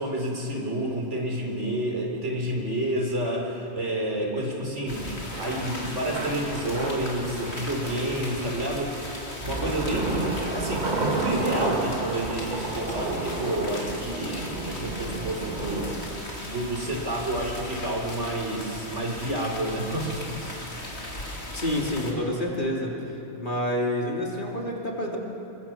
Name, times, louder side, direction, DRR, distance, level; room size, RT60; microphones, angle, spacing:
voice 1, 0.0-20.7, right 1 dB, 85° right, 0 dB, 3.9 m, -30 dB
sound 1, 4.9-22.1, left 1 dB, 70° left, 3.2 m, -38 dB
Thunder / Rain, 5.3-16.1, right 2 dB, 40° right, 1.8 m, -32 dB
voice 2, 21.5-23.0 23.4-25.2, left 1 dB, 45° left, -1 dB, 3.1 m, -28 dB
28.0 x 22.0 x 6.0 m, 2.9 s
omnidirectional pair, 1.2 m